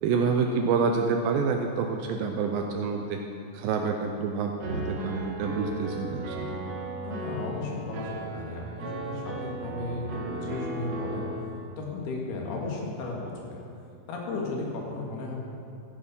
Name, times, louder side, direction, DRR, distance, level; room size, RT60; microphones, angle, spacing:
voice 1, 0.0-3.2 3.5-6.6, right 5 dB, 80° right, 3 dB, 2.2 m, -27 dB
Piano, 4.6-11.4, right 2 dB, 60° right, 1.7 m, -35 dB
voice 2, 7.0-11.3 11.8-13.6 14.1-15.3, left 3 dB, 80° left, -2 dB, 3.8 m, -34 dB
14.0 x 8.4 x 5.6 m, 2.6 s
omnidirectional pair, 4.5 m